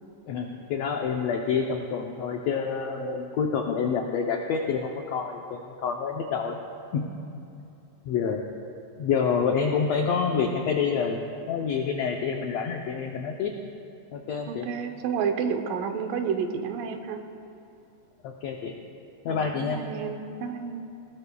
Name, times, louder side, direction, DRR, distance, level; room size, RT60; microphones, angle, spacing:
voice 1, 0.3-6.6 6.9-7.1 8.1-8.4 9.0-13.5 14.1-14.7 18.2-18.7 19.2-19.8, left 6 dB, 80° left, 2 dB, 1.4 m, -27 dB
voice 2, 14.5-17.2 19.3-20.9, right 6 dB, 80° right, 6 dB, 2.4 m, -30 dB
20.0 x 18.5 x 2.3 m, 2.7 s
omnidirectional pair, 3.9 m